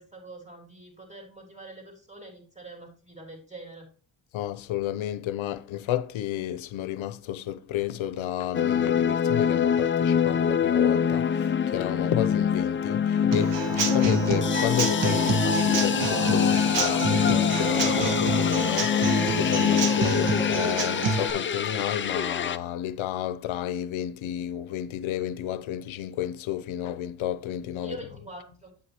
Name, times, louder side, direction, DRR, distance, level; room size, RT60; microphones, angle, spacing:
voice 1, 0.0-3.9 27.8-28.7, right 2 dB, 15° right, 3.2 m, -44 dB
voice 2, 4.3-28.0, left 11 dB, 85° left, 0.8 m, -31 dB
sound 1, 8.5-22.6, left 7 dB, 25° left, 0.4 m, -24 dB
Human voice / Acoustic guitar / Drum, 13.3-21.3, right 4 dB, 65° right, 1.3 m, -28 dB
8.4 x 8.1 x 2.9 m
cardioid pair, 95°, 47 cm